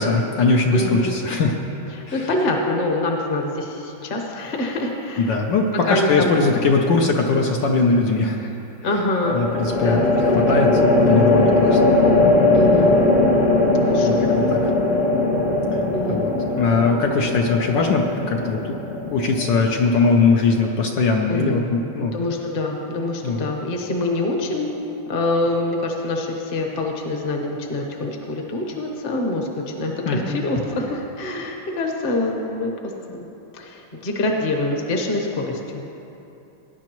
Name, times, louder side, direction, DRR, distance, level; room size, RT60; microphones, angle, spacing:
voice 1, 0.0-1.6 2.1-2.3 5.2-8.5 9.3-12.0 14.1-14.7 15.7-15.8 16.1-18.8 19.1-22.2 23.2-23.5 30.1-30.4, left 4 dB, 70° left, 1 dB, 1.2 m, -21 dB
voice 2, 0.7-1.1 1.9-5.3 5.8-6.4 8.8-9.5 9.8-10.0 10.4-10.5 12.5-13.0 13.8-14.3 15.9-16.3 21.3-21.7 22.0-24.7 25.1-32.7 33.1-33.3 33.5-35.8, left 2 dB, 35° left, 1 dB, 1.0 m, -25 dB
sound 1, 6.1-6.7 9.2-20.6, left 2 dB, 85° left, 0.4 m, -19 dB
18.5 x 10.5 x 3.0 m, 2.9 s
omnidirectional pair, 2.3 m